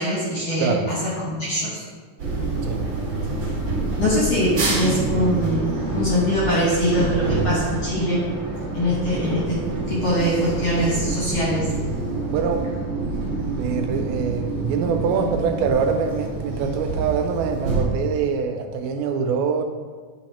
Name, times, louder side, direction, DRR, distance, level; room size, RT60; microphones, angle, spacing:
voice 1, 0.0-1.8 4.0-8.2 8.7-11.7, equal, 55° left, -6 dB, 1.8 m, -23 dB
sound 1, 2.2-17.8, right 3 dB, 55° right, 1.3 m, -27 dB
voice 2, 12.3-12.7 13.6-19.6, right 6 dB, 85° right, 5 dB, 2.3 m, -24 dB
9.9 x 3.9 x 4.2 m, 1.5 s
omnidirectional pair, 4.4 m